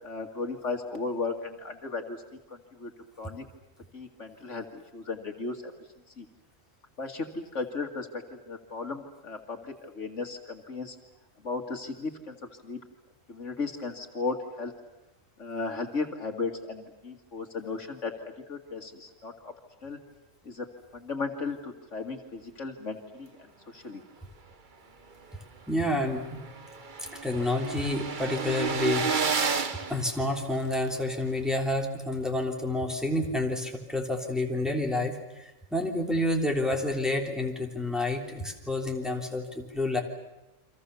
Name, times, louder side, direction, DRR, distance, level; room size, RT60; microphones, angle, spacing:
voice 1, 0.0-2.2 2.5-2.9 3.2-3.4 3.9-5.7 6.2-6.3 7.0-11.0 11.4-12.4 12.6-12.8 13.3-14.7 15.4-19.5 19.8-20.0 20.4-20.7 20.9-23.3 23.7-24.0, left 4 dB, 65° left, 4 dB, 2.4 m, -35 dB
sound 1, 25.3-25.4 25.7-25.8 26.0-30.9, right 5 dB, 40° right, 1.2 m, -31 dB
voice 2, 25.7-26.4 27.0-40.0, left 1 dB, ahead, 1 dB, 3.4 m, -29 dB
29.5 x 25.0 x 7.0 m, 0.94 s
omnidirectional pair, 1.3 m